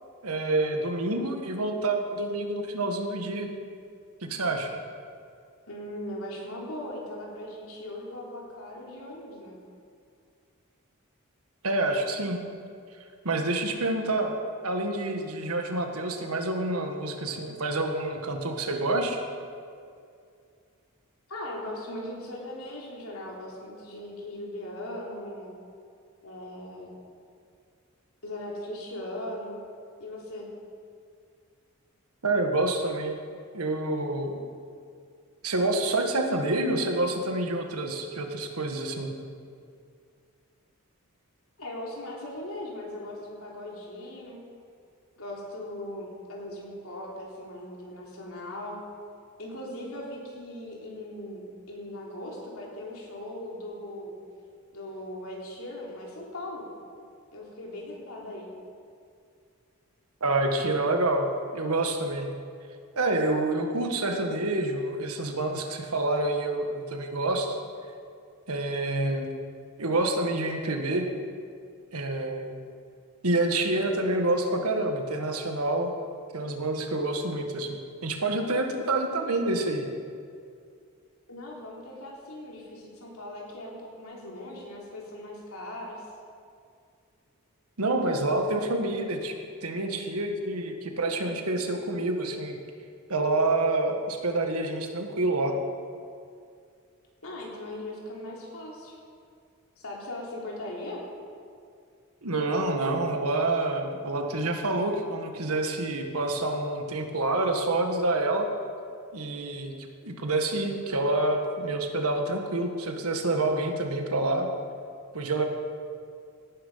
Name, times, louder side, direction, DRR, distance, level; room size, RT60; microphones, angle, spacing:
voice 1, 0.2-3.5 4.2-4.7 11.6-12.4 13.2-14.4 14.6-19.2 32.2-33.2 33.5-34.5 35.4-39.1 60.2-62.4 63.0-67.6 68.5-69.3 69.8-71.1 71.9-72.6 73.2-75.9 76.3-79.9 87.8-89.4 89.6-92.6 93.1-95.6 102.2-108.5 109.1-109.7 110.0-114.5 115.1-115.4, right 2 dB, 80° right, 4 dB, 1.7 m, -27 dB
voice 2, 5.7-9.6 21.3-25.5 26.2-26.9 28.2-29.6 30.0-30.5 41.6-44.4 45.2-48.8 49.4-54.2 54.7-56.7 57.3-58.5 81.3-86.0 97.2-99.0 99.8-101.0, left 1 dB, 70° left, -3 dB, 3.7 m, -39 dB
17.5 x 10.5 x 5.7 m, 2.3 s
head